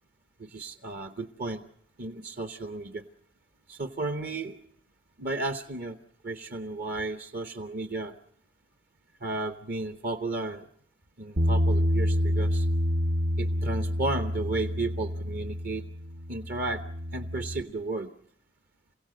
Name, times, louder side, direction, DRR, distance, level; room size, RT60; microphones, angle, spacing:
voice 1, 0.4-1.6 2.0-3.0 3.7-4.6 5.2-6.0 6.2-8.1 9.2-10.7 11.2-12.7 13.4-15.8 16.3-16.8 17.1-18.1, right 2 dB, 50° right, 9 dB, 1.0 m, -33 dB
Bass guitar, 11.4-17.6, equal, 70° right, 1.2 m, -28 dB
28.0 x 16.5 x 7.7 m, 0.66 s
head